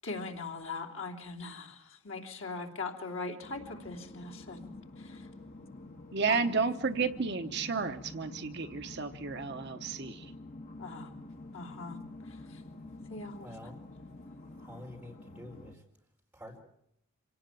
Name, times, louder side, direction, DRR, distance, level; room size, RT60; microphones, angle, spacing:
voice 1, 0.0-4.7 5.0-5.3 6.3-6.5 10.8-11.1 11.5-12.6 13.1-13.5, left 3 dB, 60° left, 2 dB, 3.1 m, -41 dB
sound 1, 3.4-15.7, left 2 dB, 40° left, 1.5 m, -48 dB
voice 2, 6.1-10.2, right 4 dB, 50° right, 8 dB, 0.9 m, -32 dB
voice 3, 13.4-13.8 14.5-15.8 16.3-16.6, left 1 dB, 5° right, -1 dB, 4.4 m, -48 dB
26.0 x 18.0 x 9.1 m, 0.76 s
head